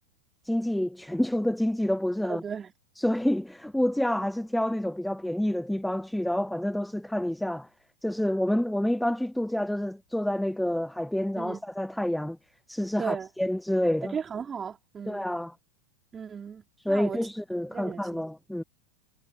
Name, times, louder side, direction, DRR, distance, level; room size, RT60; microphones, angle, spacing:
voice 1, 0.4-2.4 3.0-7.7 8.0-12.4 12.7-14.1 15.1-15.5 16.8-18.6, left 1 dB, ahead, 1.1 m, -28 dB
voice 2, 2.2-2.7 11.4-11.6 13.0-13.3 14.0-15.3 16.1-17.3 17.7-18.2, right 7 dB, 20° right, 3.4 m, -36 dB
figure-of-eight pair, 90°, 0 cm